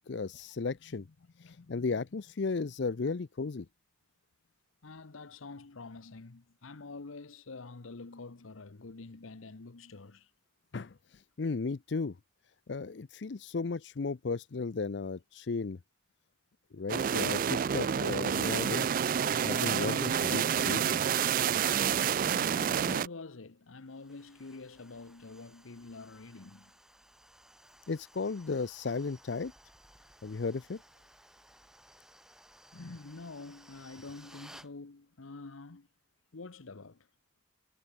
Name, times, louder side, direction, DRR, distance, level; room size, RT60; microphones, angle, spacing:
voice 1, 0.1-1.1 1.4-3.7 10.7-10.9 11.4-12.2 12.7-15.8 16.7-18.9 19.4-21.2 27.9-29.5 30.2-30.8, left 4 dB, 60° left, 0.5 m, -35 dB
voice 2, 4.8-10.3 22.2-26.7 32.7-35.9 36.3-37.1, left 3 dB, 90° left, 1.0 m, -47 dB
sound 1, 16.9-23.1, right 8 dB, 45° right, 0.3 m, -29 dB
sound 2, 23.9-34.7, right 1 dB, 5° right, 1.4 m, -58 dB
head